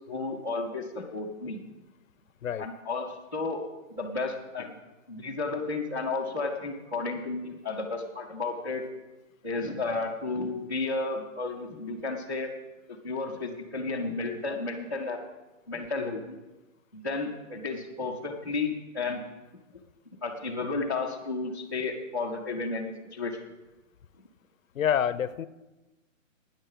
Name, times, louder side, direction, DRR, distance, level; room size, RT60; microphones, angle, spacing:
voice 1, 0.1-1.6 2.6-3.6 3.9-4.7 5.1-8.8 9.4-12.5 13.0-15.2 15.7-16.4 16.9-19.2 20.2-23.4, left 3 dB, 15° left, -4 dB, 0.6 m, -32 dB
voice 2, 24.7-25.5, left 9 dB, 75° left, 17 dB, 0.7 m, -27 dB
13.0 x 9.7 x 5.4 m, 1.1 s
hypercardioid pair, 180°, 40 cm